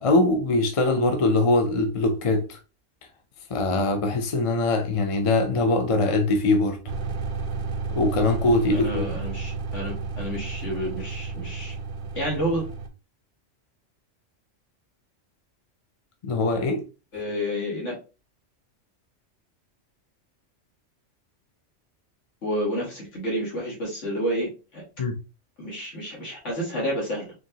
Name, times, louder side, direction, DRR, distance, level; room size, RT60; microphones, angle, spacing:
voice 1, 0.0-2.6 3.5-6.8 7.9-9.1 16.2-16.9 25.0-25.2, left 2 dB, 40° left, 0.5 m, -22 dB
sound 1, 6.9-12.9, right 4 dB, 50° right, 0.6 m, -32 dB
voice 2, 8.7-11.8 12.2-12.6 17.1-18.0 22.4-24.8 25.6-27.3, equal, 80° left, 1.9 m, -30 dB
4.4 x 3.1 x 2.8 m
omnidirectional pair, 1.2 m